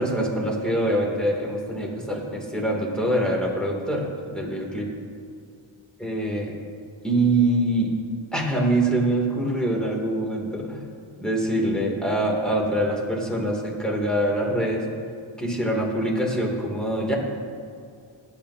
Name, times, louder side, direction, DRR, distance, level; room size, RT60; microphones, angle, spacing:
voice 1, 0.0-4.9 6.0-6.5 7.0-7.9 8.3-10.8 11.2-14.8 15.4-17.2, right 1 dB, ahead, -2 dB, 2.7 m, -24 dB
19.0 x 9.5 x 2.8 m, 2.3 s
wide cardioid pair, 50°, 50 cm